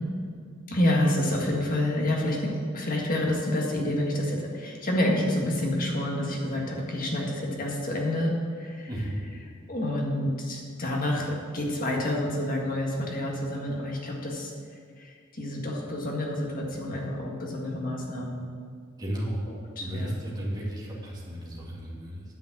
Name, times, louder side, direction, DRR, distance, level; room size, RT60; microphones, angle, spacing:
voice 1, 0.7-8.9 9.7-14.5 15.0-18.5 19.8-20.2, left 1 dB, 45° left, -1 dB, 1.7 m, -28 dB
voice 2, 19.0-19.4 19.8-22.2, right 1 dB, 20° right, -5 dB, 2.3 m, -33 dB
9.6 x 5.4 x 7.5 m, 2.1 s
head